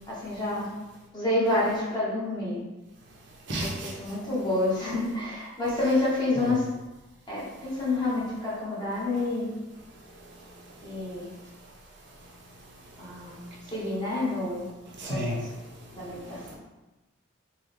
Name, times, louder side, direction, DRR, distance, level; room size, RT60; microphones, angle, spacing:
voice 1, 0.1-0.7 1.1-2.6 3.6-6.7 7.3-9.5 10.8-11.3 13.0-14.7 15.0-15.5 15.9-16.6, left 2 dB, 20° left, -8 dB, 1.1 m, -28 dB
voice 2, 3.5-3.9 15.0-15.4, right 1 dB, 60° right, -3 dB, 0.7 m, -30 dB
3.8 x 2.2 x 3.3 m, 1.1 s
head